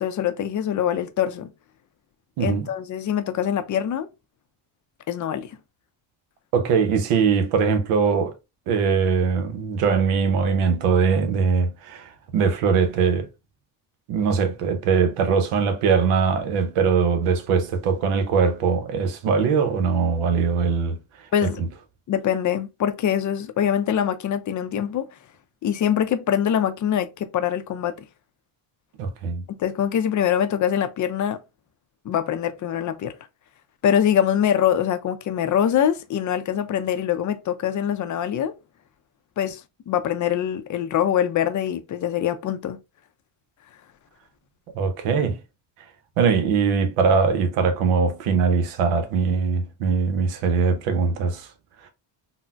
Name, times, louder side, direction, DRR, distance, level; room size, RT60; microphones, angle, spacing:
voice 1, 0.0-1.5 2.4-4.1 5.1-5.6 21.3-21.6 22.1-25.1 25.6-28.0 29.5-31.4 32.0-33.1 33.8-38.5 39.4-42.8, left 9 dB, 40° left, 0.4 m, -24 dB
voice 2, 2.4-2.7 6.5-8.3 8.7-13.3 14.1-21.7 29.0-29.4 44.7-45.4 46.2-51.5, right 5 dB, 90° right, 0.8 m, -21 dB
3.9 x 2.1 x 2.2 m
cardioid pair, 90°, 50 cm